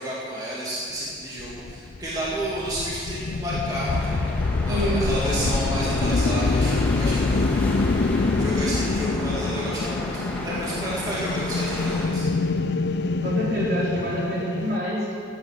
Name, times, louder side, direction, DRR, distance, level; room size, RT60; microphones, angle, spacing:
voice 1, 0.0-4.1 4.6-7.5 8.4-10.1 10.4-12.3, right 1 dB, 20° right, -7 dB, 2.3 m, -31 dB
sound 1, 1.4-14.8, left 3 dB, 70° left, 0.5 m, -25 dB
sound 2, 3.8-12.1, left 1 dB, 10° left, 2.1 m, -34 dB
voice 2, 4.7-5.0 13.2-15.0, equal, 60° right, -7 dB, 4.5 m, -27 dB
15.0 x 9.6 x 7.4 m, 2.4 s
head